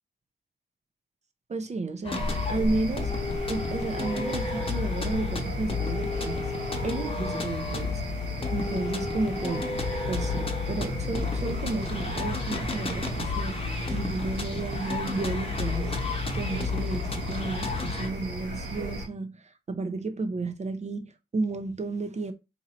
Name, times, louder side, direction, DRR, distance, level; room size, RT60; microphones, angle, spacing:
voice 1, 1.5-3.1 3.5-6.5 6.8-8.0 8.5-9.7 10.1-22.3, right 3 dB, 40° right, 0.7 m, -32 dB
sound 1, 2.0-18.1, left 4 dB, 30° left, 0.9 m, -31 dB
sound 2, 2.1-19.1, right 1 dB, 65° right, 1.1 m, -36 dB
2.7 x 2.6 x 4.2 m
cardioid pair, 50°, 18 cm